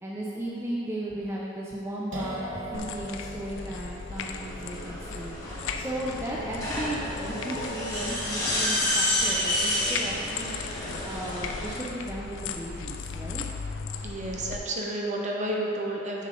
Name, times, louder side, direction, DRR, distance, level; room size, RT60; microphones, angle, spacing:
voice 1, 0.0-5.4 5.8-10.5 10.8-13.5, right 1 dB, 15° right, -5 dB, 0.5 m, -36 dB
sound 1, 2.1-9.7, right 1 dB, 85° right, 1.0 m, -44 dB
sound 2, 2.7-14.6, left 5 dB, 80° left, 0.4 m, -38 dB
sound 3, 4.1-11.8, left 1 dB, 20° left, 1.4 m, -30 dB
voice 2, 14.0-16.3, right 1 dB, 40° right, -1 dB, 0.8 m, -31 dB
6.7 x 5.6 x 3.7 m, 2.7 s
head